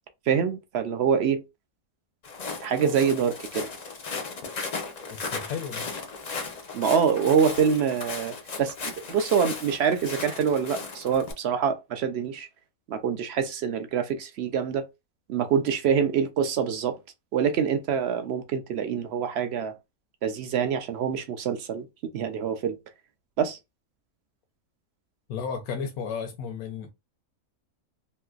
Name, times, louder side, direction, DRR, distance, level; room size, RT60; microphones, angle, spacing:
voice 1, 0.3-1.4 2.6-3.7 6.7-12.5 12.9-14.8 15.3-17.0 17.3-19.7 20.2-21.9 22.1-22.8 23.4-23.6, right 7 dB, 65° right, 0.6 m, -25 dB
Walk footsteps, 2.2-11.3, left 4 dB, 50° left, 0.5 m, -36 dB
voice 2, 5.1-5.9 25.3-26.9, left 6 dB, 85° left, 1.1 m, -33 dB
3.2 x 2.8 x 2.3 m
omnidirectional pair, 1.5 m